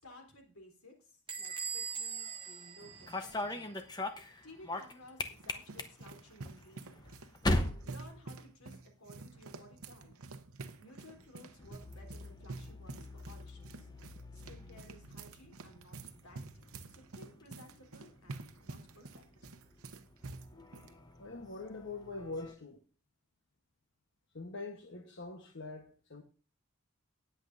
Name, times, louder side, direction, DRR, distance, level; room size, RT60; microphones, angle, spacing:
voice 1, 0.0-3.8 4.4-7.2 7.8-10.1 10.8-13.9 14.3-19.5, left 1 dB, 85° left, 3.5 m, -57 dB
Bell / Squeak, 1.3-3.8, right 6 dB, 25° right, 1.1 m, -41 dB
sound 1, 2.8-9.0 9.3-9.8 10.9-22.5, left 1 dB, 20° left, 0.9 m, -42 dB
sound 2, 4.8-20.9, right 3 dB, 85° right, 0.8 m, -49 dB
voice 2, 21.2-22.8 24.3-26.2, left 3 dB, 55° left, 1.1 m, -44 dB
19.0 x 7.9 x 2.6 m
head